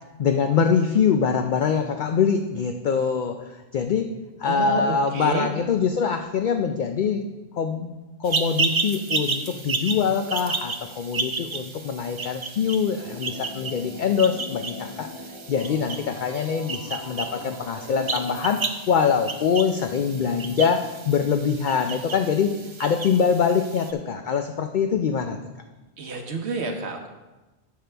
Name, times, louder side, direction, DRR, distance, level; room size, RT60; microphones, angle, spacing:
voice 1, 0.2-4.1 4.4-7.2 7.5-15.1 15.5-22.5 22.8-25.4, left 6 dB, 55° left, 5 dB, 0.6 m, -24 dB
voice 2, 4.4-5.5 26.0-27.1, right 3 dB, 85° right, 3 dB, 1.3 m, -29 dB
sound 1, 8.2-23.9, right 4 dB, 35° right, 0.5 m, -32 dB
sound 2, 13.0-18.4, left 3 dB, 85° left, 1.5 m, -41 dB
12.5 x 6.7 x 3.4 m, 1.1 s
omnidirectional pair, 1.1 m